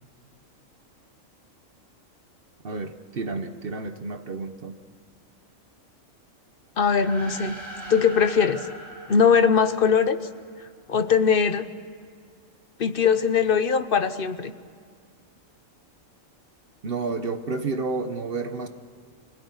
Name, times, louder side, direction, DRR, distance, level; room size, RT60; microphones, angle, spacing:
voice 1, 2.6-4.8 16.8-18.7, right 3 dB, 45° right, 9 dB, 1.1 m, -30 dB
voice 2, 6.8-7.6 7.9-8.7 9.1-10.2 10.9-11.7 12.8-14.5, left 6 dB, 45° left, 11 dB, 1.0 m, -21 dB
sound 1, 6.8-10.5, equal, 70° right, 5.4 m, -41 dB
25.0 x 17.0 x 9.6 m, 2.1 s
omnidirectional pair, 1.4 m